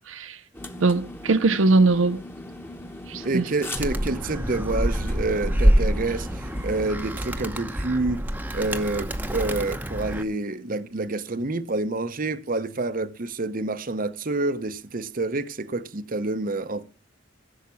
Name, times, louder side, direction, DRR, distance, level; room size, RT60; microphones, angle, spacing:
voice 1, 0.1-0.4 0.8-2.2 3.1-3.5, right 3 dB, 85° right, 0.7 m, -21 dB
sound 1, 0.5-6.9, left 1 dB, 10° left, 1.2 m, -39 dB
voice 2, 3.2-6.3 6.6-8.2 8.5-16.8, right 2 dB, 45° right, 0.8 m, -28 dB
Animal, 3.8-10.2, equal, 10° right, 0.9 m, -26 dB
15.0 x 7.4 x 7.0 m
head